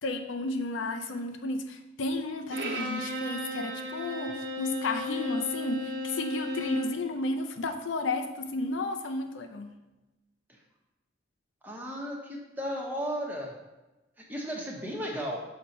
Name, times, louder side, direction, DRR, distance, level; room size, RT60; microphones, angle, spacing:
voice 1, 0.0-9.7, left 2 dB, 85° left, 6 dB, 0.6 m, -32 dB
Bowed string instrument, 2.5-7.0, left 1 dB, 75° right, 0.8 m, -35 dB
voice 2, 11.6-13.5 14.2-15.4, equal, 10° right, -2 dB, 0.9 m, -34 dB
6.8 x 2.9 x 5.3 m, 1.1 s
head